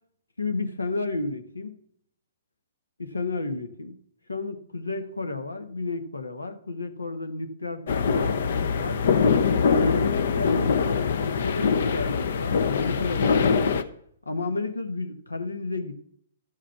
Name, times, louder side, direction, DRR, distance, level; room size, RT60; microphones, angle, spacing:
voice 1, 0.4-1.7 3.0-3.9 4.3-7.8 8.1-9.0 9.7-13.8 14.2-15.9, left 3 dB, 90° left, 8 dB, 1.1 m, -32 dB
sound 1, 7.9-13.8, left 5 dB, 60° left, 0.7 m, -23 dB
12.5 x 5.0 x 5.8 m, 0.67 s
figure-of-eight pair, 120°, 0 cm